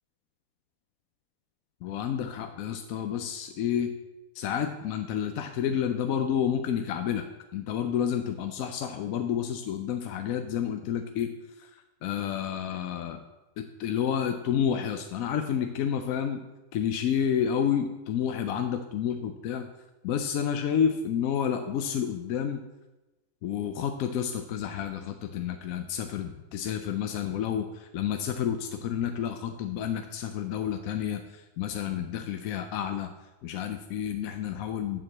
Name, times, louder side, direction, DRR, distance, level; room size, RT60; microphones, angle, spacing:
voice 1, 1.8-3.9 4.3-7.2 7.5-11.3 11.6-13.2 13.6-16.4 16.7-19.7 20.0-22.6 23.4-33.1 33.4-35.0, left 8 dB, 80° left, 7 dB, 1.0 m, -30 dB
7.5 x 4.7 x 7.2 m, 1.0 s
omnidirectional pair, 1.5 m